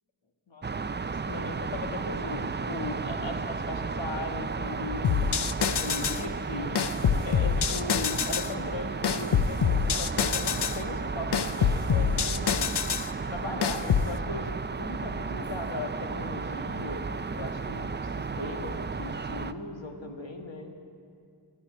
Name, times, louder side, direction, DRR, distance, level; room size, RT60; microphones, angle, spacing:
sound 1, 0.6-19.5, right 4 dB, 25° right, 0.4 m, -34 dB
voice 1, 1.2-6.8 7.2-12.8 13.3-14.5 14.8-17.0 17.3-20.9, left 3 dB, 80° left, 3 dB, 1.5 m, -38 dB
sound 2, 5.0-6.2 6.8-8.5 9.0-10.8 11.3-13.1 13.6-14.1, left 7 dB, 65° left, 0.6 m, -26 dB
13.5 x 8.5 x 10.0 m, 2.3 s
wide cardioid pair, 50°, 44 cm